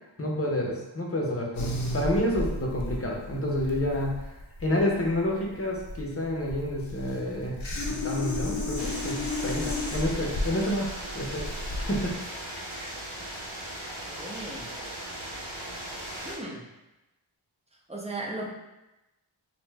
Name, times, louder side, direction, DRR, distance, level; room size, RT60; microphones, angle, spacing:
voice 1, 0.2-1.7 1.9-4.1 4.6-10.9 11.1-12.5, left 1 dB, 30° left, -2 dB, 0.6 m, -29 dB
sound 1, 1.6-12.2, left 2 dB, 75° left, 0.6 m, -33 dB
sound 2, 8.8-16.4, right 1 dB, 80° right, 0.8 m, -38 dB
voice 2, 14.1-14.7 16.2-16.6 17.9-18.5, right 2 dB, 15° right, -2 dB, 0.5 m, -36 dB
2.7 x 2.1 x 3.3 m, 0.99 s
wide cardioid pair, 45°, 48 cm